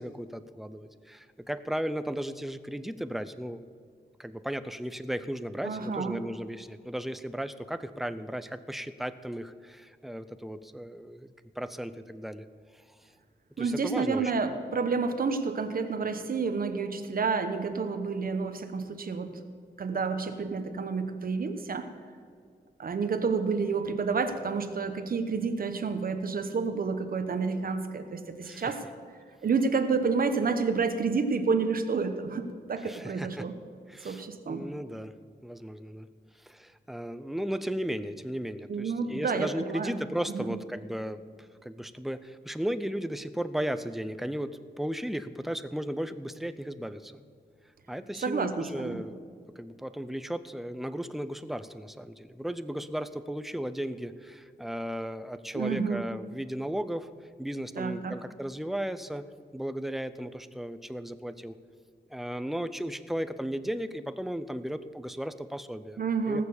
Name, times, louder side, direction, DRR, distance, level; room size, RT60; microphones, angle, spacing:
voice 1, 0.0-3.6 4.2-11.3 11.6-12.5 13.6-14.3 28.4-28.7 32.8-33.5 33.9-35.1 35.4-36.1 36.4-41.2 41.6-47.2 47.9-49.2 49.6-57.1 57.4-59.2 59.5-61.6 62.1-66.4, equal, ahead, 12 dB, 0.4 m, -35 dB
voice 2, 5.6-6.2 13.6-19.3 19.8-21.9 22.8-28.8 29.4-33.5 34.0-34.7 38.7-40.0 40.3-40.6 48.2-49.0 55.5-56.1 57.8-58.2 66.0-66.4, right 4 dB, 55° right, 8 dB, 1.1 m, -29 dB
18.5 x 6.8 x 7.1 m, 2.1 s
wide cardioid pair, 175°, 18 cm